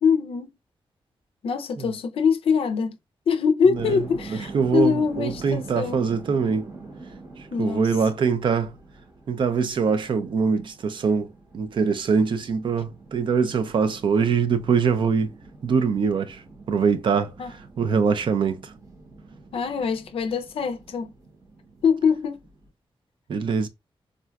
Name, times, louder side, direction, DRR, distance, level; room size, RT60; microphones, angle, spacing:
voice 1, 0.0-0.5 1.4-3.0 3.3-6.0 7.5-7.9 17.4-17.5 19.5-21.1 21.8-22.4, left 6 dB, 70° left, 0.4 m, -23 dB
sound 1, 3.7-22.7, right 3 dB, 35° right, 0.7 m, -45 dB
voice 2, 4.5-6.7 7.6-8.7 9.3-11.3 11.5-15.3 15.6-16.4 16.7-17.3 17.8-18.7 23.3-23.7, right 5 dB, 55° right, 0.4 m, -23 dB
3.7 x 2.2 x 2.2 m
wide cardioid pair, 165°, 10 cm